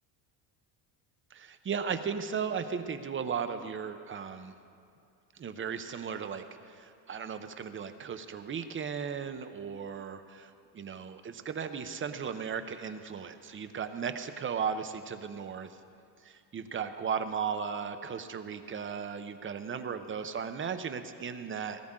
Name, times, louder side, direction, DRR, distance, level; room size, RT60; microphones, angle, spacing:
voice 1, 1.3-4.5 5.3-15.8 16.2-21.8, right 6 dB, 30° right, 9 dB, 0.7 m, -36 dB
18.5 x 13.5 x 3.7 m, 2.5 s
cardioid pair, 130°, 43 cm